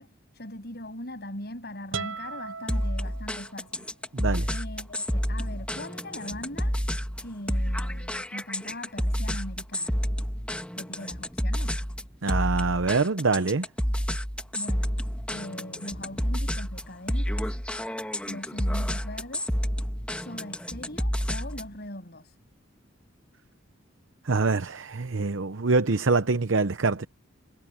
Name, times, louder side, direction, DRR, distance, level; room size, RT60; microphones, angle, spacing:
voice 1, 0.0-3.9 4.5-6.8 7.2-10.0 10.7-11.8 14.5-14.9 15.3-17.6 18.2-19.6 20.1-22.4, left 1 dB, 50° left, 8.0 m, -40 dB
sound 1, 1.9-3.8, right 5 dB, 85° right, 7.2 m, -38 dB
sound 2, 2.7-21.8, equal, 5° left, 2.0 m, -29 dB
voice 2, 4.1-4.5 12.2-13.7 24.2-27.1, right 3 dB, 65° right, 0.8 m, -25 dB
head